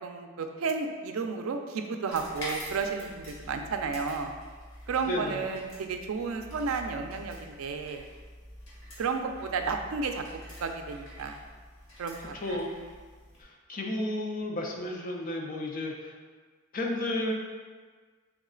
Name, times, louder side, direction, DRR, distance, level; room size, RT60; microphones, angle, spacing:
voice 1, 0.0-4.3 4.9-8.0 9.0-10.2 10.6-11.4 12.0-12.6, right 5 dB, 85° right, 5 dB, 0.4 m, -32 dB
sound 1, 2.1-13.4, equal, 80° left, 1.3 m, -46 dB
voice 2, 5.0-5.4 12.4-12.7 13.4-16.1 16.7-17.3, left 1 dB, 40° left, 0 dB, 0.5 m, -32 dB
3.5 x 3.1 x 3.7 m, 1.5 s
head